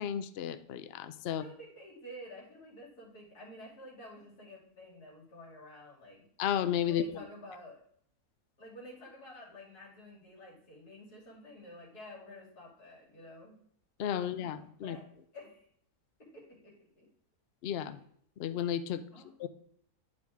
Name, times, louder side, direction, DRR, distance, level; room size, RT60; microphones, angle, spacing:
voice 1, 0.0-1.4 6.4-7.1 14.0-15.0 17.6-18.0 18.4-19.0 19.4-19.5, left 9 dB, 65° left, 12 dB, 0.6 m, -33 dB
voice 2, 1.3-6.3 6.9-7.8 8.6-13.6 14.2-15.7 16.3-17.1 19.1-19.3, left 1 dB, 90° left, -3 dB, 3.0 m, -50 dB
10.0 x 4.9 x 3.5 m, 0.65 s
omnidirectional pair, 1.6 m